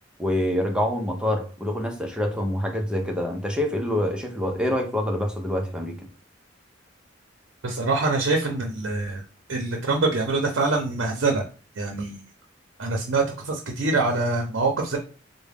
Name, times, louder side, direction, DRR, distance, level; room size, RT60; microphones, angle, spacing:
voice 1, 0.2-6.1, left 1 dB, 5° right, 0.6 m, -26 dB
voice 2, 7.6-9.2 9.5-11.4 11.8-12.2 12.8-15.0, right 3 dB, 85° right, 0.6 m, -24 dB
3.6 x 2.1 x 3.4 m
head